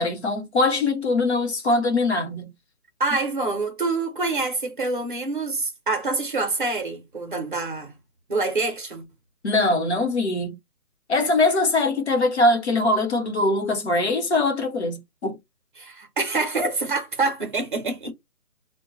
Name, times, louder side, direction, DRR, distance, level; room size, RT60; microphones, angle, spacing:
voice 1, 0.0-2.5 9.4-10.6 11.1-15.4, left 2 dB, 45° left, 1.0 m, -22 dB
voice 2, 3.0-7.9 8.3-9.0 15.8-18.1, right 3 dB, 35° right, 0.7 m, -26 dB
2.2 x 2.1 x 3.8 m
figure-of-eight pair, 165°, 44 cm